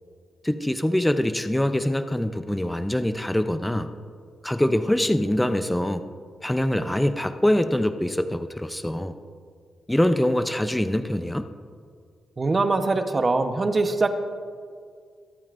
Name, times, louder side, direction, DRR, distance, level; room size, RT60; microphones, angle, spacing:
voice 1, 0.4-3.9 4.4-6.0 6.4-9.2 9.9-11.5, left 1 dB, 10° left, 9 dB, 0.6 m, -24 dB
voice 2, 12.4-14.1, right 3 dB, 35° right, 8 dB, 1.0 m, -22 dB
23.0 x 8.8 x 2.6 m, 2.1 s
cardioid pair, 65°, 0 cm